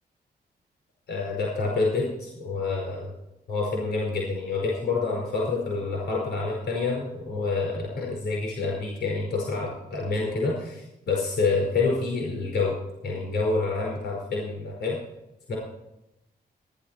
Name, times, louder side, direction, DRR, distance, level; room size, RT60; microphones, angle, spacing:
voice 1, 1.1-3.1 3.5-12.8 13.0-15.0 15.5-15.6, left 3 dB, 85° left, -2 dB, 5.1 m, -27 dB
16.5 x 10.5 x 4.5 m, 0.89 s
cardioid pair, 95°, 17 cm